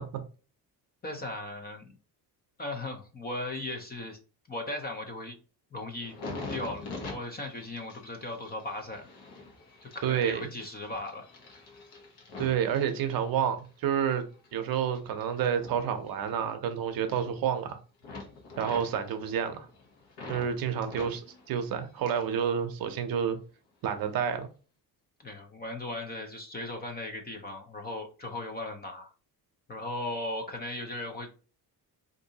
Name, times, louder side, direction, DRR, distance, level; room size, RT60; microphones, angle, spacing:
voice 1, 1.0-1.9 2.6-4.2 4.5-5.4 5.7-6.1 6.5-9.1 9.8-11.2 20.7-20.8 25.2-29.1 29.7-31.3, left 2 dB, 25° left, 0.5 m, -37 dB
sound 1, 6.0-13.7 14.1-16.7 17.0-17.7 18.0-20.5 20.8-22.4 22.7-23.4 24.0-24.2, left 3 dB, 80° left, 1.0 m, -45 dB
voice 2, 10.0-10.4 12.4-14.2 14.5-17.8 18.6-19.7 20.3-21.2 21.5-23.4 23.8-24.5, right 8 dB, 60° right, 0.6 m, -29 dB
3.7 x 2.6 x 2.7 m
cardioid pair, 145°, 39 cm